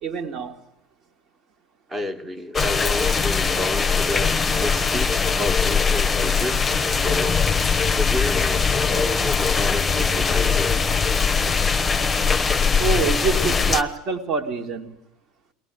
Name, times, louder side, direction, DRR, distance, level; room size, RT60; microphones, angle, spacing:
voice 1, 0.0-0.6 12.8-15.0, right 5 dB, 40° right, 4 dB, 2.6 m, -26 dB
voice 2, 1.9-6.6 7.0-7.4 8.0-10.7, left 1 dB, 15° right, 8 dB, 2.0 m, -30 dB
sound 1, 2.5-13.8, left 5 dB, 15° left, 1.2 m, -21 dB
22.0 x 18.0 x 9.7 m, 0.88 s
figure-of-eight pair, 75°, 0 cm